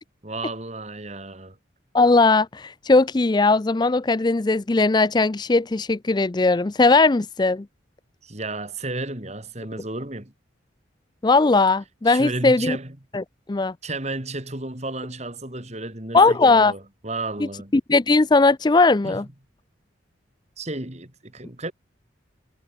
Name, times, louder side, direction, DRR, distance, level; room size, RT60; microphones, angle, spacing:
voice 1, 0.2-1.6 8.2-10.3 12.1-13.0 13.8-17.7 19.0-19.2 20.6-21.7, right 2 dB, 35° right, 2.6 m, -32 dB
voice 2, 1.9-7.6 11.2-12.8 13.1-13.2 13.5-13.7 16.1-16.7 17.7-19.2, left 3 dB, 20° left, 0.4 m, -18 dB
head